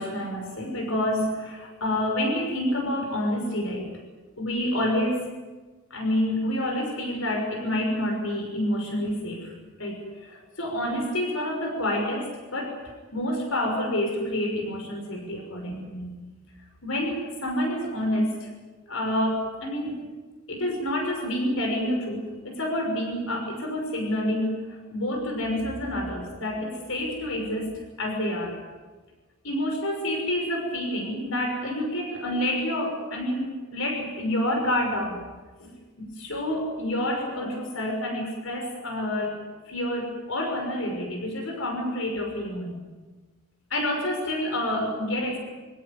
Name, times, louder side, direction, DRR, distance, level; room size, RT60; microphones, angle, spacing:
voice 1, 0.0-4.0 4.4-5.3 5.9-9.5 9.8-12.8 13.1-16.2 16.8-18.5 18.9-20.0 20.5-28.6 29.4-35.2 35.6-42.8 43.7-45.4, left 1 dB, 75° left, 3 dB, 6.0 m, -28 dB
27.5 x 17.5 x 9.7 m, 1.3 s
head